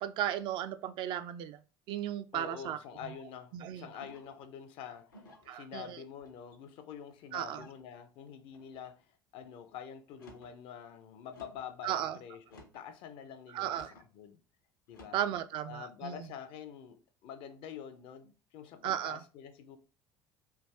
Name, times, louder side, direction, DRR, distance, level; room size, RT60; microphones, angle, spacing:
voice 1, 0.0-1.6 1.9-2.8 3.5-3.9 5.5-6.0 7.3-7.7 11.8-12.2 13.5-13.9 15.1-16.2 18.8-19.2, right 11 dB, 50° right, 0.4 m, -35 dB
voice 2, 2.3-9.0 9.3-14.4 14.9-15.2 15.7-19.8, left 8 dB, 50° left, 0.5 m, -47 dB
sound 1, 4.0-4.4 5.1-5.6 6.2-6.7 7.4-7.9 8.5-8.9 10.1-10.6 11.3-11.7 12.4-12.9 13.7-14.1 14.9-15.3, left 1 dB, 80° left, 0.8 m, -56 dB
3.4 x 2.5 x 3.0 m
figure-of-eight pair, 65°, 11 cm